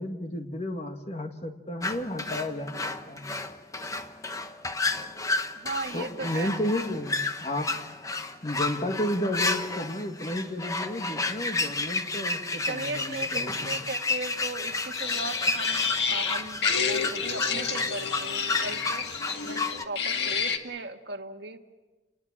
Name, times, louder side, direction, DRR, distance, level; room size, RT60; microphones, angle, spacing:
voice 1, 0.0-3.4 5.9-7.7 8.4-13.8, left 1 dB, 35° left, 5 dB, 1.9 m, -32 dB
sound 1, 1.8-19.8, left 3 dB, 20° left, 1.0 m, -31 dB
voice 2, 5.5-6.5 7.7-7.8 12.7-19.1 19.4-21.6, right 3 dB, 75° right, 6 dB, 1.6 m, -37 dB
sound 2, 14.9-20.6, left 6 dB, 80° left, 1.9 m, -29 dB
30.0 x 20.0 x 7.5 m, 1.2 s
head